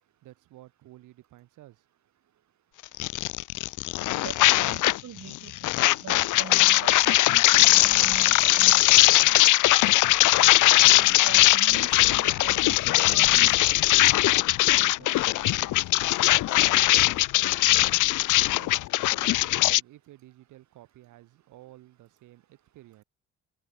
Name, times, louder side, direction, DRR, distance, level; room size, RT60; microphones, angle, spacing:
voice 1, 0.2-1.9 14.7-16.0 16.4-17.2 17.5-18.0 18.6-23.0, right 16 dB, 90° right, 7.3 m, -53 dB
sound 1, 3.0-5.0 5.3-19.8, left 17 dB, 80° left, 0.7 m, -20 dB
voice 2, 4.2-10.4 10.8-13.6, right 10 dB, 65° right, 5.5 m, -43 dB
cardioid pair, 90°, 30 cm